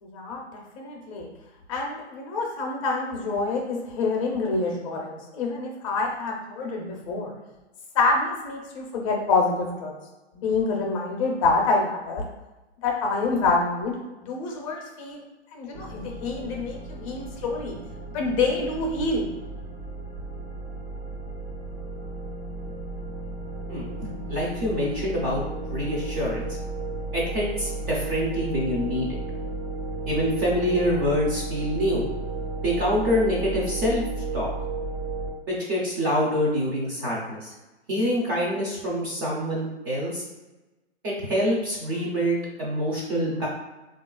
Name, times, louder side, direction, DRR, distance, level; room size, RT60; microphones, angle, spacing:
voice 1, 0.0-1.3 1.7-7.3 7.9-9.9 10.3-12.2 12.8-13.9 14.2-15.2 15.5-17.7 18.1-19.3, left 3 dB, 30° left, 0 dB, 0.5 m, -26 dB
sound 1, 15.7-35.3, right 3 dB, 65° right, 0.8 m, -34 dB
voice 2, 23.7-25.4 25.7-26.5 27.1-29.1 30.1-32.0 32.6-34.0 34.3-34.5 35.5-37.5 37.9-40.2 41.0-43.5, equal, 20° right, -5 dB, 0.4 m, -26 dB
3.3 x 2.3 x 2.2 m, 1.1 s
hypercardioid pair, 130°, 34 cm